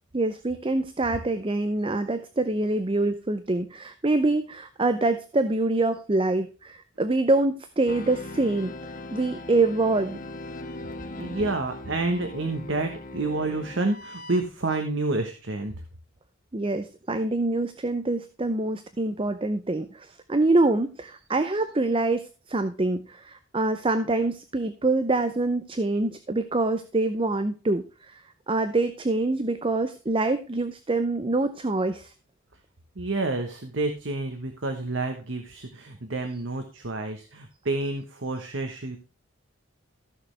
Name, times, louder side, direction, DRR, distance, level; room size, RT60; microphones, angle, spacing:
voice 1, 0.1-8.7 9.1-10.2 16.5-28.2 28.5-32.1, right 2 dB, 25° right, 10 dB, 0.6 m, -25 dB
sound 1, 7.9-14.4, left 2 dB, 40° left, 0.9 m, -39 dB
voice 2, 11.2-15.7 33.0-39.0, right 2 dB, 60° right, 6 dB, 1.2 m, -29 dB
14.5 x 6.5 x 3.3 m, 0.33 s
head